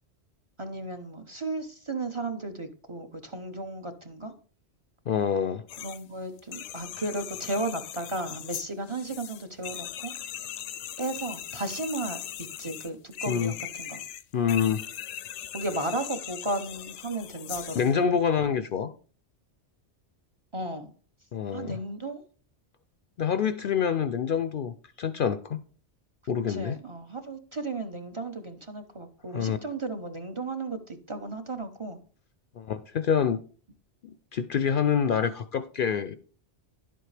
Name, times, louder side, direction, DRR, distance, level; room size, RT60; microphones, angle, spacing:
voice 1, 0.6-4.3 5.8-10.1 11.0-14.0 15.5-18.1 20.5-20.9 21.5-22.2 26.2-32.0, right 2 dB, 30° right, 5 dB, 0.7 m, -34 dB
voice 2, 5.1-5.6 13.3-13.5 14.3-14.8 17.8-18.9 21.3-21.8 23.2-25.6 26.3-26.8 29.3-29.6 32.6-33.4 34.3-36.2, left 7 dB, 60° left, 11 dB, 0.6 m, -26 dB
sound 1, 5.7-6.0 6.4-18.0, left 10 dB, 90° left, 0.9 m, -39 dB
11.0 x 7.8 x 3.3 m, 0.40 s
omnidirectional pair, 1.2 m